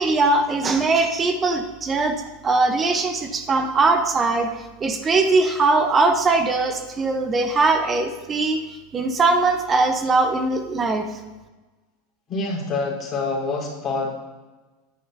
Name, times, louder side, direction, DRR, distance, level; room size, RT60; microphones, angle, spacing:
voice 1, 0.0-8.6 8.9-11.1, right 3 dB, 20° right, 7 dB, 0.8 m, -21 dB
voice 2, 12.3-14.1, left 3 dB, 25° left, -3 dB, 3.9 m, -26 dB
14.0 x 10.0 x 2.7 m, 1.2 s
supercardioid pair, 145°, 0 cm